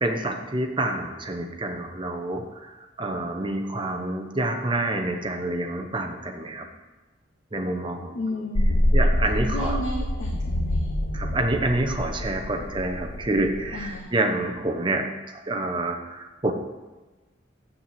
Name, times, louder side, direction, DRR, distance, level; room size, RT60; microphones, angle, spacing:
voice 1, 0.0-6.7 7.5-8.4 8.9-9.8 11.1-16.5, right 2 dB, 25° right, 4 dB, 0.9 m, -28 dB
voice 2, 8.1-9.0 9.5-10.9 13.7-14.1, left 1 dB, 85° left, 0 dB, 1.1 m, -33 dB
sound 1, 8.6-14.0, left 1 dB, 55° left, 0.8 m, -26 dB
7.6 x 6.9 x 8.0 m, 1.2 s
head